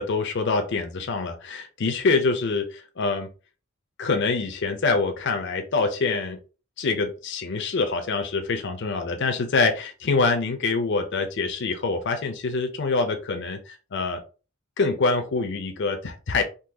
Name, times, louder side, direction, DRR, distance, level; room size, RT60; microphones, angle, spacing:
voice 1, 0.0-3.3 4.0-6.4 6.8-14.2 14.8-16.4, left 4 dB, 55° left, 6 dB, 0.5 m, -25 dB
3.8 x 2.7 x 2.7 m, 0.34 s
head